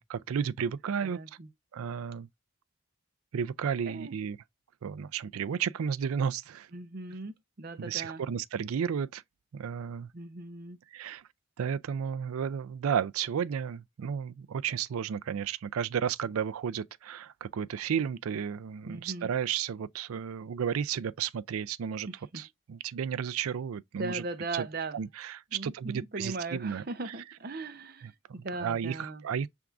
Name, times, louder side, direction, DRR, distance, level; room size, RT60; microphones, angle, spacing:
voice 1, 0.0-1.2 1.7-2.3 3.3-4.4 4.8-6.7 7.8-9.2 9.5-10.1 10.9-11.2 11.6-22.1 22.3-24.2 24.5-24.7 24.9-27.1 28.0-28.1 28.6-29.5, right 7 dB, 85° right, 0.4 m, -33 dB
voice 2, 1.0-1.5 3.9-4.1 6.7-8.2 10.1-10.8 18.8-19.3 22.3-22.4 24.0-25.0 25.5-29.2, right 3 dB, 45° right, 0.7 m, -38 dB
5.8 x 3.5 x 2.5 m
head